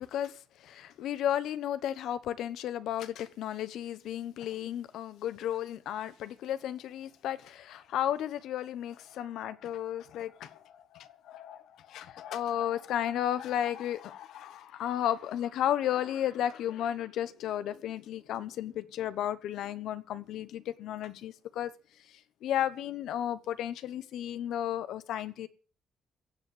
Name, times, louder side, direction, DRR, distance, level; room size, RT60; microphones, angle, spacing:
voice 1, 0.0-21.7 22.0-25.5, left 11 dB, 80° left, 1.1 m, -34 dB
15.5 x 8.1 x 8.1 m
cardioid pair, 85°, 0 cm